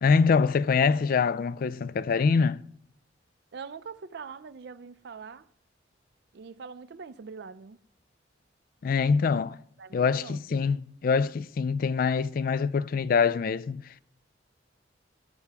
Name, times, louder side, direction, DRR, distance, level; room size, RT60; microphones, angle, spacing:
voice 1, 0.0-2.6 8.8-9.6 9.9-13.8, left 5 dB, 50° left, 0.3 m, -24 dB
voice 2, 3.5-5.5 6.3-7.8 9.8-10.6, right 5 dB, 60° right, 0.4 m, -43 dB
15.5 x 6.8 x 3.4 m
head